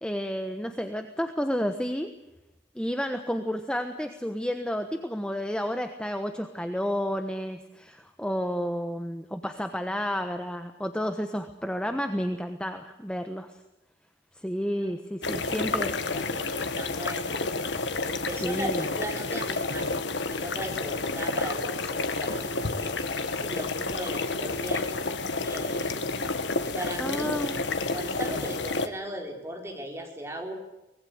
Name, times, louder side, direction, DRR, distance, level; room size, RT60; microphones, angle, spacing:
voice 1, 0.0-2.1 2.7-13.5 14.3-15.9 18.4-18.8 27.0-27.6, equal, 5° left, 7 dB, 1.2 m, -31 dB
voice 2, 14.8-17.4 18.0-20.0 20.3-22.9 23.3-24.9 25.4-26.1 26.6-27.6 27.9-30.5, right 1 dB, 15° right, 1 dB, 4.9 m, -38 dB
sound 1, 15.2-28.9, left 3 dB, 85° left, 1.7 m, -30 dB
24.5 x 20.0 x 8.0 m, 0.98 s
head